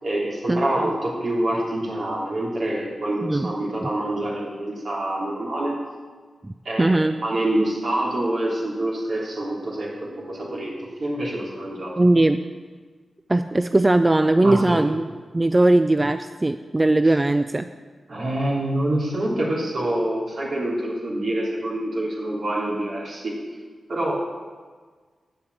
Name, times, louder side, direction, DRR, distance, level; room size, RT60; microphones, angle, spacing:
voice 1, 0.0-5.7 6.6-12.0 14.4-14.8 17.0-17.1 18.1-23.4 23.9-24.1, right 1 dB, 60° right, -4 dB, 3.2 m, -26 dB
voice 2, 3.2-3.5 3.8-3.9 6.4-7.2 12.0-12.4 13.3-15.1 15.3-17.7, right 2 dB, 20° right, 10 dB, 0.3 m, -19 dB
9.0 x 6.9 x 8.2 m, 1.5 s
wide cardioid pair, 95°, 0 cm